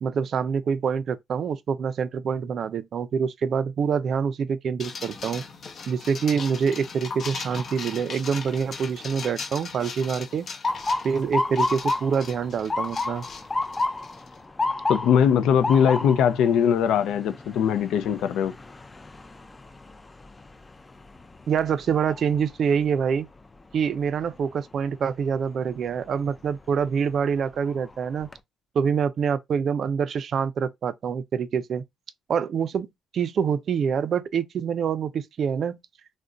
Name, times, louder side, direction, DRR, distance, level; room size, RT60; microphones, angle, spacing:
voice 1, 0.0-5.4 5.9-10.5 11.0-13.3 21.5-23.3 23.7-28.3 28.7-31.8 32.3-32.9 33.1-35.8, right 6 dB, 60° right, 0.3 m, -26 dB
sound 1, 4.8-14.3, left 5 dB, 55° left, 0.8 m, -38 dB
Motor vehicle (road) / Siren, 10.6-22.5 23.0-23.4 24.2-24.5 26.4-26.6 27.1-27.2 27.7-28.3, left 2 dB, 20° left, 0.4 m, -31 dB
voice 2, 14.9-18.6, left 8 dB, 80° left, 0.4 m, -21 dB
2.4 x 2.1 x 3.7 m
cardioid pair, 90°, 0 cm